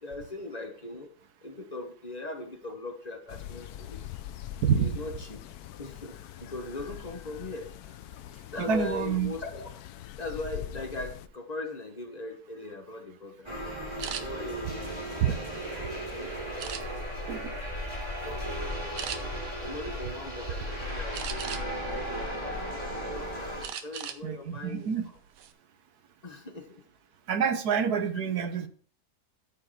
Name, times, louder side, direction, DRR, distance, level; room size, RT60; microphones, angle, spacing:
voice 1, 0.0-1.1 1.4-4.0 4.7-5.4 5.8-7.7 8.5-9.7 10.2-19.2 19.6-24.9 26.2-26.8, left 2 dB, 25° left, 5 dB, 1.1 m, -40 dB
sound 1, 3.3-11.3, left 12 dB, 70° left, 1.0 m, -42 dB
voice 2, 8.6-9.3 15.2-15.4 17.3-17.5 24.2-25.1 27.3-28.7, right 7 dB, 70° right, 9 dB, 1.3 m, -27 dB
sound 2, 13.4-23.7, equal, 15° right, 3.0 m, -35 dB
sound 3, 14.0-14.2 14.9-15.9 16.6-17.2 17.7-17.9 18.3-18.4 18.9-19.2 21.1-21.8 22.3-23.1 23.6-24.2 24.6-24.7 25.2-25.5, right 9 dB, 85° right, 1.4 m, -38 dB
13.0 x 5.1 x 4.2 m, 0.44 s
omnidirectional pair, 1.8 m